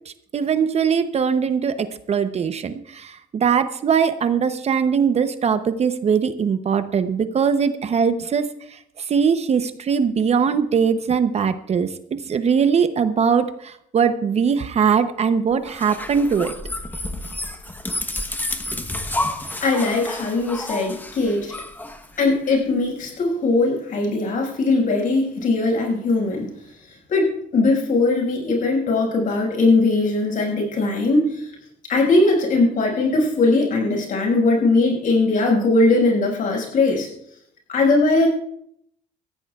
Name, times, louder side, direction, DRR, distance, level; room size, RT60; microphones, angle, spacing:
voice 1, 0.1-16.5, right 6 dB, 40° right, 10 dB, 0.8 m, -21 dB
sound 1, 15.6-22.6, left 1 dB, 10° left, 1.0 m, -30 dB
voice 2, 19.6-21.5 22.2-26.5 27.1-31.5 31.9-37.1 37.7-38.3, left 3 dB, 55° left, 0 dB, 5.6 m, -20 dB
19.5 x 15.0 x 2.4 m, 0.72 s
cardioid pair, 110°, 17 cm